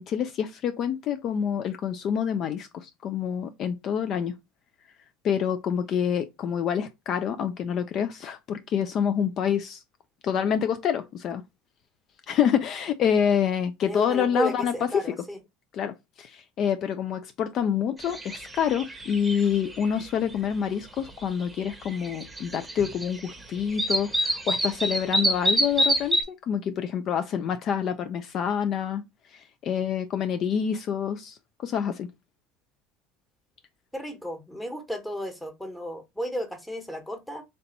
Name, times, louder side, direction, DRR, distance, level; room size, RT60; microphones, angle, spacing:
voice 1, 0.0-4.4 5.2-9.8 10.2-11.4 12.3-15.1 15.7-29.0 29.3-32.1, left 8 dB, 50° left, 0.4 m, -27 dB
voice 2, 13.8-15.4 33.9-37.4, equal, 5° left, 1.3 m, -33 dB
sound 1, 18.0-18.4 18.7-19.9 21.4-21.5 22.0-23.0 23.3-23.4 23.8-26.2, equal, 10° right, 1.0 m, -25 dB
3.4 x 2.6 x 4.0 m
supercardioid pair, 90°, 0 cm